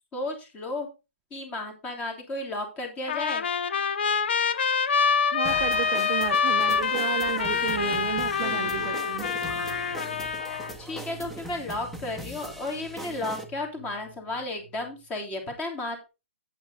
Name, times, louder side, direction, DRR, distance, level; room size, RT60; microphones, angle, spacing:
voice 1, 0.1-0.9 1.3-3.4 10.8-16.1, left 2 dB, 20° left, 3 dB, 3.0 m, -33 dB
Trumpet, 3.1-10.7, left 6 dB, 60° left, 1.0 m, -26 dB
voice 2, 5.3-9.3, right 15 dB, 35° right, 11 dB, 0.5 m, -33 dB
sound 1, 5.4-13.4, right 1 dB, ahead, 1.2 m, -40 dB
sound 2, 7.3-15.1, right 3 dB, 40° left, 1.9 m, -49 dB
8.5 x 8.5 x 4.1 m, 0.28 s
hypercardioid pair, 145°, 7 cm